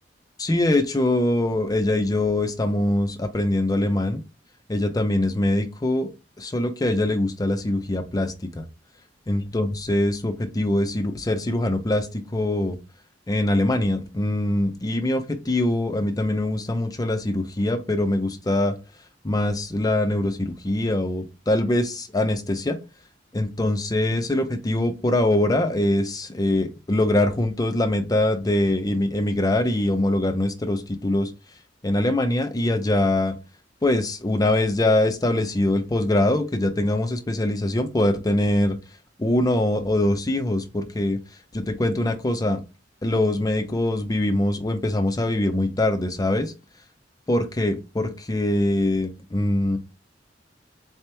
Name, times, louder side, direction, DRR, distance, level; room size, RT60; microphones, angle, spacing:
voice 1, 0.4-4.2 4.7-6.1 6.4-8.6 9.3-12.8 13.3-18.7 19.2-22.8 23.3-31.3 31.8-33.3 33.8-38.8 39.2-41.2 41.5-42.6 43.0-46.5 47.3-49.8, left 1 dB, 20° left, 7 dB, 0.5 m, -23 dB
4.2 x 2.9 x 3.4 m, 0.27 s
head